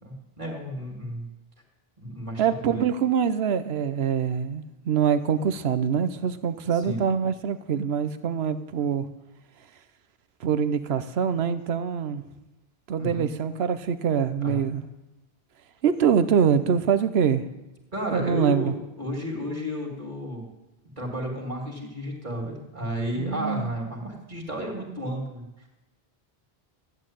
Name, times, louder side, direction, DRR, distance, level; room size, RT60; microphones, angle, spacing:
voice 1, 0.0-1.2 2.0-2.8 6.7-7.0 13.0-13.2 14.4-14.6 17.9-20.5 21.0-25.4, equal, 50° right, 1 dB, 2.9 m, -32 dB
voice 2, 2.4-9.1 10.4-12.2 12.9-14.8 15.8-17.5 18.1-18.7 23.2-23.7, right 7 dB, 80° right, 12 dB, 1.0 m, -24 dB
14.0 x 8.5 x 9.1 m, 1.0 s
omnidirectional pair, 1.0 m